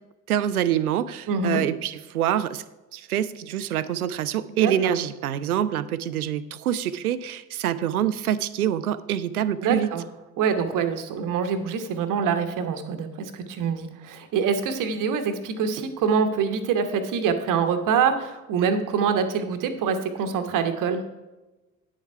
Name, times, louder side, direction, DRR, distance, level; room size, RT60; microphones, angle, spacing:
voice 1, 0.3-2.6 2.9-9.9, right 10 dB, 80° right, 16 dB, 0.5 m, -26 dB
voice 2, 1.3-1.6 4.6-5.0 9.6-10.0 10.4-21.0, right 6 dB, 45° right, 8 dB, 1.2 m, -25 dB
9.8 x 7.4 x 4.5 m, 1.1 s
figure-of-eight pair, 55°, 43 cm